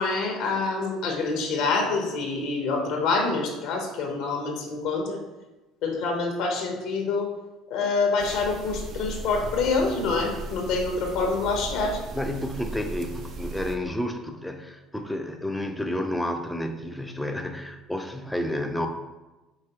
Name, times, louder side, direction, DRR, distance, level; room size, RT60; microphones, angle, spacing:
voice 1, 0.0-5.2 5.8-7.3 7.7-12.0, left 3 dB, 70° left, 2 dB, 0.8 m, -26 dB
sound 1, 8.2-13.7, right 2 dB, 55° right, 0.5 m, -37 dB
voice 2, 12.1-18.9, left 1 dB, 5° left, 5 dB, 0.5 m, -30 dB
4.9 x 3.0 x 2.9 m, 1.1 s
hypercardioid pair, 75°, 0 cm